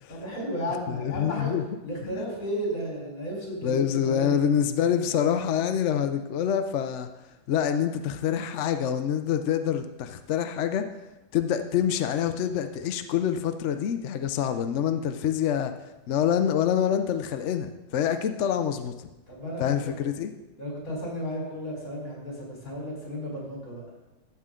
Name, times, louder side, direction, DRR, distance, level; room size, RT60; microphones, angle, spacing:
voice 1, 0.1-1.5 1.8-4.4 19.3-19.9 20.6-23.8, equal, 50° left, -3 dB, 4.4 m, -34 dB
voice 2, 0.9-1.6 2.0-2.2 3.6-7.1 7.5-10.8 11.3-15.7 16.1-19.1 19.6-20.3, left 9 dB, 70° left, 8 dB, 0.7 m, -26 dB
14.0 x 7.7 x 3.7 m, 1.0 s
omnidirectional pair, 1.9 m